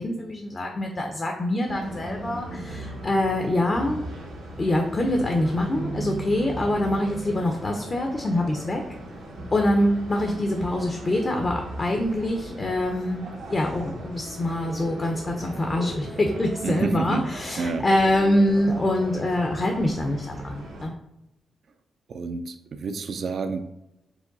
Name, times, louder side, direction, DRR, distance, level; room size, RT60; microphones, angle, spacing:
voice 1, 0.0-4.0 4.6-8.8 9.5-13.2 13.5-20.9, left 1 dB, 40° left, 2 dB, 0.6 m, -25 dB
sound 1, 1.7-20.9, right 1 dB, 90° right, 0.9 m, -38 dB
voice 2, 16.6-17.3 17.6-17.9 22.1-23.6, right 4 dB, 65° right, 8 dB, 0.4 m, -29 dB
4.8 x 2.3 x 3.9 m, 0.86 s
cardioid pair, 65°, 0 cm